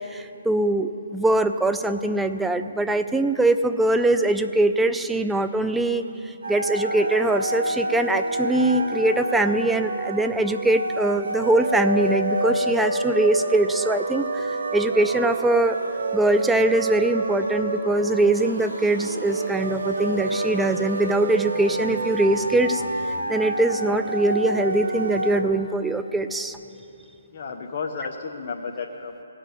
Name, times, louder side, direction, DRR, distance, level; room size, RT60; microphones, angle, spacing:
voice 1, 0.1-15.8 16.1-22.8 23.3-26.6, right 2 dB, 5° right, 8 dB, 0.4 m, -22 dB
sound 1, 6.4-25.4, right 2 dB, 70° right, 1.2 m, -28 dB
sound 2, 18.3-23.2, right 1 dB, 45° right, 2.5 m, -40 dB
voice 2, 27.3-29.2, left 5 dB, 40° left, 1 dB, 0.9 m, -32 dB
16.5 x 6.1 x 9.5 m, 2.8 s
hypercardioid pair, 150°, 0 cm